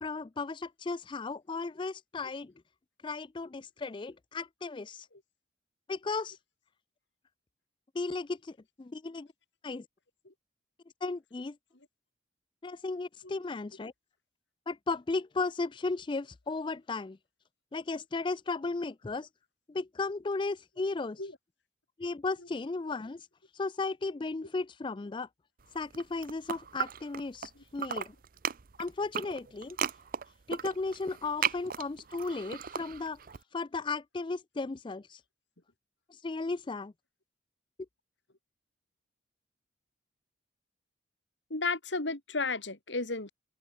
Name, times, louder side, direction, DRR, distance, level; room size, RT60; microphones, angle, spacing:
voice 1, 0.0-2.5 3.0-5.1 5.9-6.4 7.9-9.3 9.6-9.9 11.0-11.6 12.6-13.9 14.7-17.2 17.7-19.3 19.7-21.2 22.0-23.3 23.5-25.3 25.7-28.2 28.8-29.8 30.5-33.2 33.5-35.2 36.1-36.9, left 3 dB, 25° left, 0.4 m, -35 dB
sound 1, 25.8-27.5 27.8-33.4, right 8 dB, 45° right, 0.6 m, -36 dB
voice 2, 41.5-43.3, left 3 dB, 65° left, 2.9 m, -33 dB
head